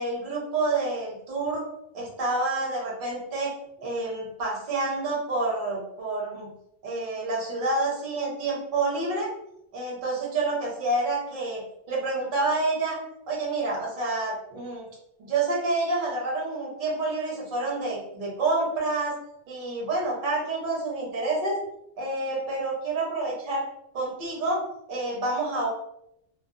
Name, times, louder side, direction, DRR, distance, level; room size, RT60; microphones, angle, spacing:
voice 1, 0.0-1.7 1.9-6.5 6.8-9.3 9.7-13.0 13.3-14.8 15.2-19.2 19.5-21.6 22.0-23.7 23.9-24.6 24.9-25.7, right 2 dB, 50° right, -3 dB, 0.9 m, -28 dB
2.5 x 2.3 x 2.3 m, 0.79 s
omnidirectional pair, 1.2 m